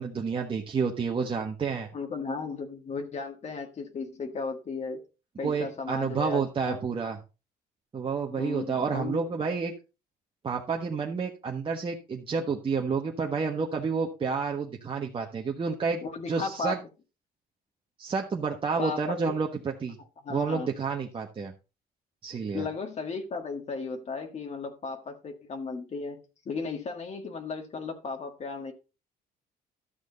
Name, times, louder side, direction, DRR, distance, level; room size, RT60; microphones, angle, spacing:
voice 1, 0.0-1.9 5.4-7.2 7.9-9.7 10.4-16.8 18.0-20.0 20.3-21.5 22.2-22.7, right 5 dB, 30° right, 1.4 m, -30 dB
voice 2, 1.9-5.0 5.4-6.8 8.3-9.2 16.0-16.8 18.8-19.4 20.2-20.7 22.5-28.7, left 4 dB, 40° left, 1.8 m, -35 dB
12.5 x 6.3 x 4.0 m
cardioid pair, 110°, 17 cm